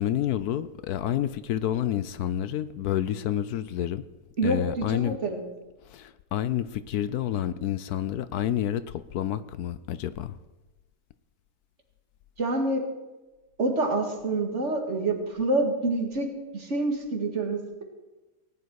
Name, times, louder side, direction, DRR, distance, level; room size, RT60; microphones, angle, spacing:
voice 1, 0.0-4.0 4.4-5.2 5.8-10.4, left 11 dB, 75° left, 14 dB, 1.1 m, -29 dB
voice 2, 4.4-5.4 12.4-12.9 13.6-17.8, right 2 dB, 45° right, 2 dB, 2.3 m, -27 dB
18.5 x 10.5 x 4.7 m, 1.1 s
omnidirectional pair, 1.7 m